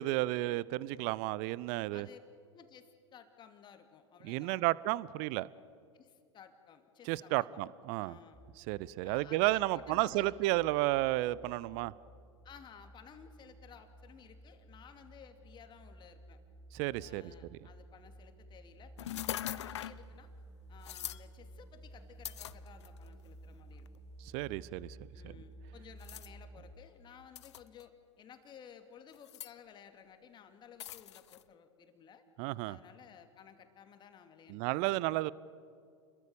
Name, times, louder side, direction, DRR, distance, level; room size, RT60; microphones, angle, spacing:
voice 1, 0.0-2.1 4.2-5.5 7.1-8.2 8.7-11.9 16.7-17.2 24.2-25.0 25.2-25.3 32.4-32.8 34.5-35.3, right 18 dB, 45° right, 21 dB, 0.7 m, -32 dB
voice 2, 2.5-4.6 5.9-7.6 7.9-8.4 9.0-10.6 12.4-16.4 17.0-20.3 20.7-24.0 25.1-32.3 32.6-35.0, left 8 dB, 30° left, 7 dB, 2.6 m, -56 dB
sound 1, 8.3-26.7, right 1 dB, 25° right, 4.4 m, -54 dB
sound 2, 19.0-20.0 20.8-21.2 22.3-23.1 23.9-24.0 26.0-26.3 27.4-27.8 29.1-29.5 30.8-31.4, left 12 dB, 65° left, 0.7 m, -41 dB
30.0 x 22.0 x 7.0 m, 2.3 s
figure-of-eight pair, 90°, 16 cm